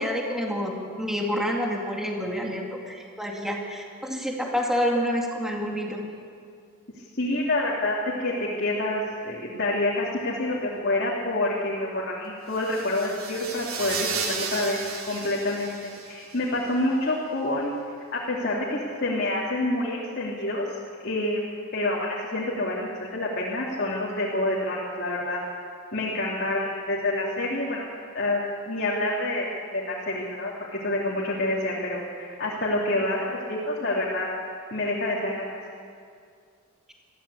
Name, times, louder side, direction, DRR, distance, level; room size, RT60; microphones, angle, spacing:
voice 1, 0.0-6.0, equal, ahead, 0 dB, 2.3 m, -28 dB
voice 2, 7.1-8.3 8.6-14.8 15.0-15.8 16.1-17.7 18.1-20.6 21.0-25.4 25.9-27.8 28.1-34.3 34.7-35.6, left 1 dB, 50° left, -5 dB, 2.9 m, -27 dB
sound 1, 12.5-16.4, right 5 dB, 75° right, 2.7 m, -34 dB
21.5 x 14.5 x 8.4 m, 2.2 s
head